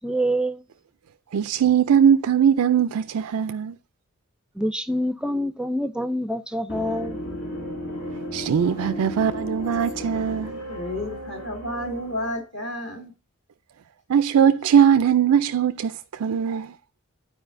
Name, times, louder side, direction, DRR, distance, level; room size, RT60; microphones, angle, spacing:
voice 1, 0.0-0.6 4.6-7.2, equal, 5° right, 0.4 m, -26 dB
voice 2, 1.3-3.8 8.3-10.6 14.1-16.7, right 8 dB, 80° right, 0.4 m, -20 dB
sound 1, 6.7-12.4, equal, 70° left, 2.6 m, -34 dB
voice 3, 10.7-13.1, left 1 dB, 55° left, 2.2 m, -31 dB
11.5 x 4.8 x 2.6 m
head